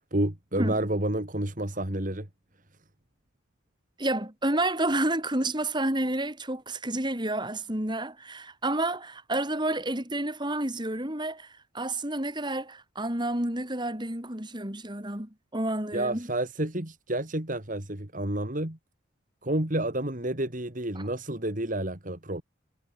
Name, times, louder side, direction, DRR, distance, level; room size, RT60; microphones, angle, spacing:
voice 1, 0.1-2.3 15.9-18.8 19.4-22.4, right 1 dB, 40° right, 2.6 m, -30 dB
voice 2, 4.0-16.3, right 1 dB, 25° right, 3.6 m, -30 dB
head